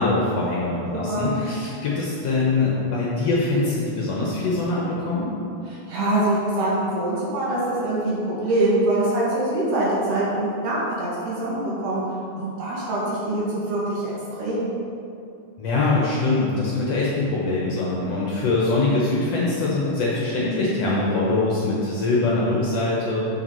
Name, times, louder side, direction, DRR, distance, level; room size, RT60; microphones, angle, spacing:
voice 1, 0.0-5.3 15.6-23.2, left 2 dB, 65° left, -5 dB, 1.7 m, -23 dB
voice 2, 0.9-1.3 5.7-12.0 12.4-14.1 14.4-14.7, right 1 dB, 70° right, -7 dB, 3.6 m, -24 dB
7.4 x 5.9 x 5.4 m, 2.6 s
omnidirectional pair, 3.9 m